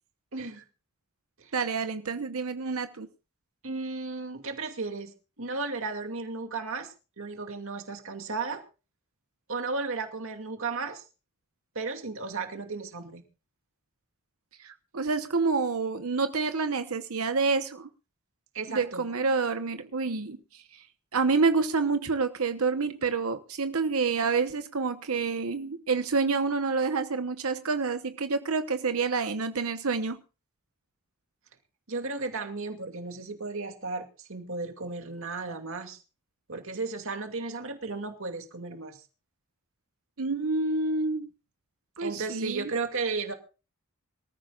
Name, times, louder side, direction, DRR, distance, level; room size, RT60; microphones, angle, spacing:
voice 1, 0.3-0.6 1.4-1.5 3.6-8.6 9.5-11.0 11.7-13.2 18.5-19.1 31.9-36.0 36.5-39.0 42.0-43.3, right 3 dB, 65° right, 2.4 m, -34 dB
voice 2, 1.5-3.1 14.6-17.9 18.7-20.8 21.1-30.2 40.2-41.3 42.0-42.7, right 4 dB, 80° right, 1.0 m, -28 dB
25.5 x 14.5 x 2.4 m
head